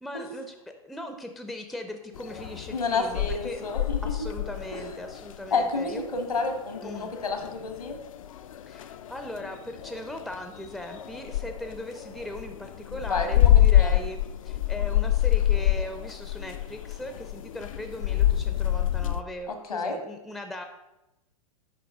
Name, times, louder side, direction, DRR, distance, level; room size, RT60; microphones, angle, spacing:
voice 1, 0.0-3.6 4.0-6.0 6.8-7.1 8.7-20.6, left 1 dB, ahead, 5 dB, 0.5 m, -39 dB
sound 1, 2.1-19.2, left 12 dB, 65° left, 0.4 m, -27 dB
voice 2, 2.7-4.0 4.7-4.8 5.5-8.0 13.0-14.0 19.5-20.0, left 4 dB, 85° left, 5 dB, 1.2 m, -30 dB
9.8 x 3.4 x 3.5 m, 0.94 s
figure-of-eight pair, 105°, 19 cm